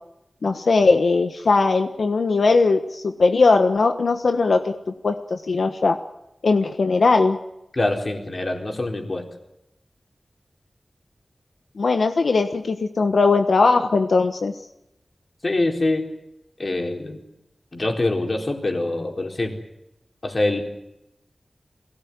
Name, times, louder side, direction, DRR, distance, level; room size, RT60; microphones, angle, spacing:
voice 1, 0.4-6.0 6.4-7.4 11.8-14.5, left 3 dB, 90° left, 6 dB, 1.3 m, -19 dB
voice 2, 7.7-9.3 15.4-16.1 16.6-17.2 17.7-19.6 20.2-20.6, left 2 dB, 45° left, 3 dB, 4.1 m, -24 dB
23.0 x 17.5 x 9.6 m, 0.87 s
wide cardioid pair, 90°, 0 cm